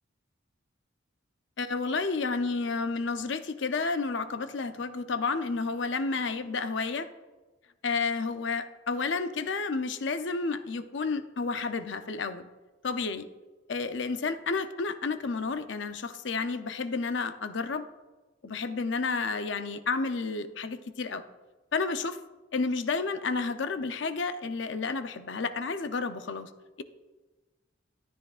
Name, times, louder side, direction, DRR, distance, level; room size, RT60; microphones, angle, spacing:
voice 1, 1.6-7.1 7.8-12.5 12.8-13.3 13.7-17.8 18.4-21.2 21.7-22.2 22.5-26.5, left 4 dB, 65° left, 10 dB, 0.6 m, -31 dB
13.5 x 10.0 x 2.4 m, 1.2 s
head